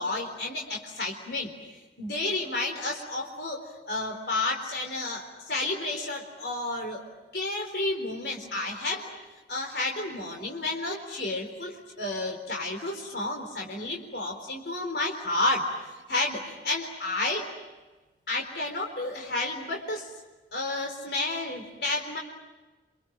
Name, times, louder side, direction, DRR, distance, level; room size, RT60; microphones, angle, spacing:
voice 1, 0.0-1.5 2.0-7.0 7.3-9.1 9.5-15.7 16.1-17.5 18.3-20.1 20.5-22.2, left 2 dB, 65° left, 1 dB, 3.9 m, -31 dB
29.0 x 27.0 x 7.4 m, 1.2 s
head